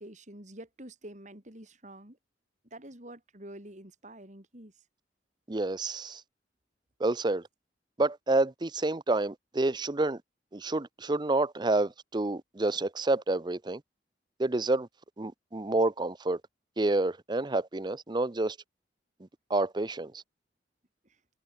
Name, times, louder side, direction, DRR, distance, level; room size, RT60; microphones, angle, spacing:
voice 1, 0.0-2.2 2.7-4.7 21.0-21.2, right 1 dB, 45° right, 6.0 m, -47 dB
voice 2, 5.5-6.2 7.0-7.5 8.0-10.2 10.5-13.8 14.4-14.9 15.2-16.4 16.8-18.6 19.5-20.2, right 2 dB, 25° right, 0.7 m, -28 dB
head